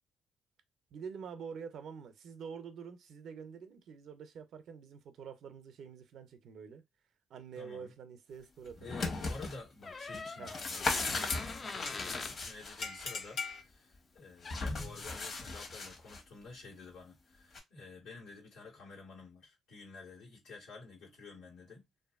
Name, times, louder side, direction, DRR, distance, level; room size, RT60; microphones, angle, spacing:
voice 1, 0.9-6.8 7.3-9.2 10.4-10.5, right 6 dB, 70° right, 0.5 m, -47 dB
voice 2, 7.5-7.9 8.8-21.9, left 4 dB, 85° left, 1.4 m, -51 dB
sound 1, 8.7-9.6 10.1-13.1 14.4-16.2 17.5-17.6, left 3 dB, 50° left, 1.1 m, -37 dB
Door, 9.8-12.4 14.2-14.3 14.4-14.8, left 4 dB, 35° left, 0.3 m, -44 dB
sound 2, 10.5-10.8 11.3-12.3 12.8-13.6, left 4 dB, 70° left, 0.6 m, -40 dB
2.5 x 2.5 x 2.4 m
cardioid pair, 75°, 0 cm